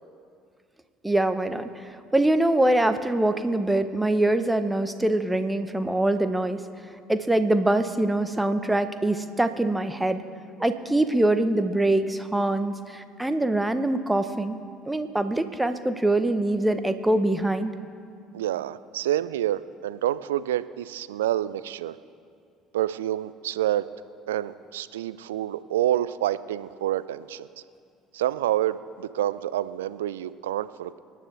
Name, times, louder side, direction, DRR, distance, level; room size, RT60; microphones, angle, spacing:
voice 1, 1.0-1.7 2.1-6.6 7.1-10.2 10.6-14.6 14.9-17.7, right 1 dB, 10° right, 10 dB, 0.9 m, -24 dB
voice 2, 18.3-22.0 22.7-23.9 24.3-27.5 28.1-31.0, right 12 dB, 80° right, 15 dB, 0.3 m, -28 dB
24.0 x 10.0 x 3.4 m, 2.4 s
hypercardioid pair, 60°, 0 cm